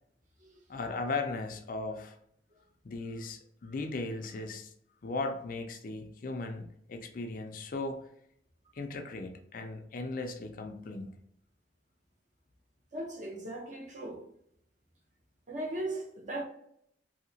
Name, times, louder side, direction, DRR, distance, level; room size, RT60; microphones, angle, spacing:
voice 1, 0.7-2.2 2.8-4.7 5.0-8.0 8.7-11.1, left 3 dB, 50° left, 0.4 m, -37 dB
voice 2, 12.9-14.2 15.5-16.4, right 1 dB, 45° right, 0.8 m, -37 dB
2.8 x 2.8 x 2.7 m
head